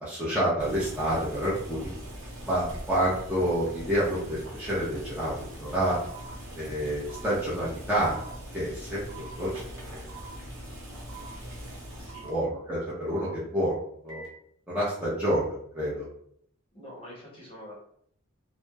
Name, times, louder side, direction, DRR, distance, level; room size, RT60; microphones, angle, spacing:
voice 1, 0.0-1.9 2.4-5.3 5.6-6.0 6.5-8.2 8.5-10.0 12.2-13.7 14.0-14.2 14.7-16.1, right 1 dB, 5° right, -9 dB, 0.6 m, -28 dB
Boiling, 0.6-12.4, equal, 65° right, 0.8 m, -42 dB
sound 1, 6.1-6.3 7.1-7.3 8.1-8.3 9.1-9.3 10.1-10.3 11.1-11.3 12.1-12.3 13.1-13.3 14.1-14.3, right 7 dB, 85° right, 1.2 m, -46 dB
voice 2, 12.0-12.3 16.7-17.8, left 1 dB, 25° left, -5 dB, 0.8 m, -45 dB
2.8 x 2.1 x 2.3 m, 0.66 s
head